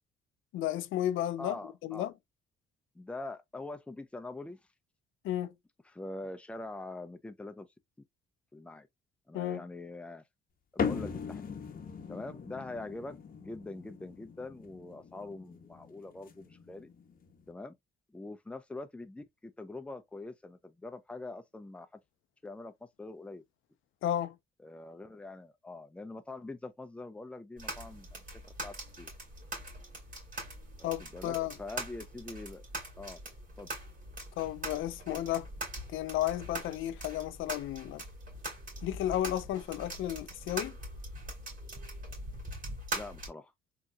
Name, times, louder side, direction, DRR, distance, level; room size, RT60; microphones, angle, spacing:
voice 1, 0.5-2.1 5.2-5.5 9.3-9.6 24.0-24.4 30.8-31.5 34.4-35.5 35.9-38.0 38.8-40.8, left 12 dB, 80° left, 0.5 m, -33 dB
voice 2, 1.4-2.1 2.9-4.6 5.9-7.7 8.5-8.9 9.3-10.2 10.7-11.6 12.1-16.9 17.5-17.7 18.1-22.0 22.4-23.4 24.6-28.2 28.6-29.1 30.8-32.6 33.0-33.2 33.6-33.7 42.9-43.5, left 2 dB, 5° left, 0.5 m, -44 dB
sound 1, 10.8-17.5, left 6 dB, 45° left, 0.8 m, -40 dB
sound 2, 27.6-43.3, right 1 dB, 40° right, 2.5 m, -42 dB
3.8 x 2.8 x 2.2 m
cardioid pair, 90°, 20 cm